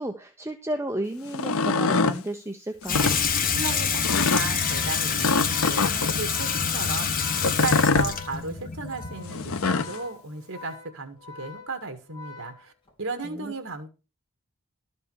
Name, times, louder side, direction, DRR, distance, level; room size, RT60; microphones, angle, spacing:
voice 1, 0.0-3.1 13.2-13.5, right 1 dB, 10° right, 0.8 m, -32 dB
sound 1, 1.3-2.2 2.8-3.2 4.0-4.5 5.2-6.2 7.4-8.1 9.3-10.0, left 4 dB, 75° left, 0.7 m, -24 dB
Water tap faucet / Sink (filling or washing), 2.8-9.9, left 6 dB, 40° left, 1.2 m, -27 dB
voice 2, 3.6-12.7 13.0-13.9, right 3 dB, 70° right, 2.1 m, -35 dB
Organ, 4.0-13.1, left 5 dB, 25° left, 2.7 m, -45 dB
12.5 x 5.4 x 6.4 m
head